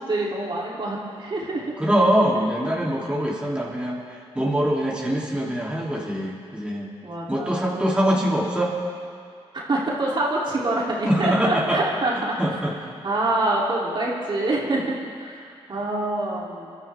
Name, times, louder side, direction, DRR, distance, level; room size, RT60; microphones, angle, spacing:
voice 1, 0.0-1.7 7.0-8.2 9.5-12.4 13.0-16.7, right 2 dB, 45° right, -5 dB, 3.2 m, -26 dB
voice 2, 1.8-6.9 7.3-8.7 11.1-11.8 12.1-13.0, equal, 10° right, -5 dB, 3.0 m, -23 dB
27.5 x 12.5 x 3.6 m, 2.2 s
cardioid pair, 85°, 11 cm